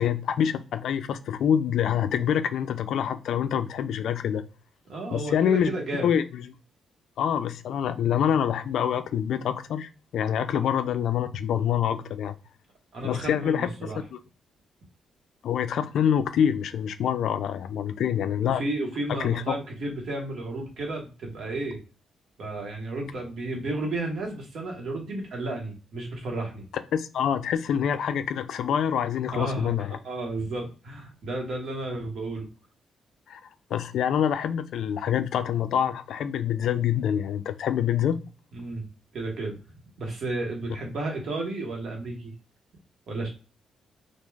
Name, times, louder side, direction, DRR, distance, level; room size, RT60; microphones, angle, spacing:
voice 1, 0.0-4.4 5.1-5.7 6.0-6.5 7.2-12.3 13.0-13.7 14.1-14.2 15.4-18.6 19.1-19.6 26.9-30.0 33.3-33.4 33.7-38.2, left 9 dB, 75° left, 0.3 m, -26 dB
voice 2, 4.9-6.1 12.9-14.0 18.6-21.8 22.4-26.6 29.3-29.8 30.0-32.5 38.5-38.9 39.1-39.6 40.0-42.3 43.1-43.3, right 2 dB, 60° right, 1.1 m, -32 dB
3.2 x 2.3 x 2.3 m
cardioid pair, 120°, 0 cm